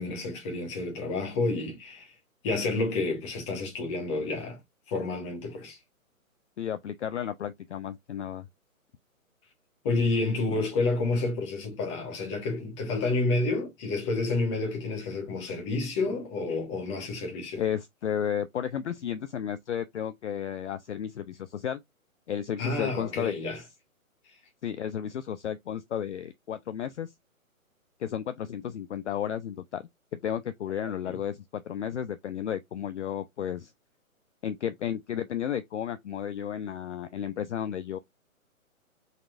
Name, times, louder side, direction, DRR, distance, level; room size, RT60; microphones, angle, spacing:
voice 1, 0.0-2.1 2.4-4.6 4.9-5.8 9.8-17.6 22.6-23.6 31.0-31.2, left 3 dB, 20° left, 1.4 m, -29 dB
voice 2, 6.6-8.5 17.6-21.8 22.3-23.7 24.6-27.1 28.0-33.7 34.4-38.0, left 9 dB, 55° left, 0.5 m, -33 dB
4.4 x 4.1 x 2.5 m
hypercardioid pair, 150°, 42 cm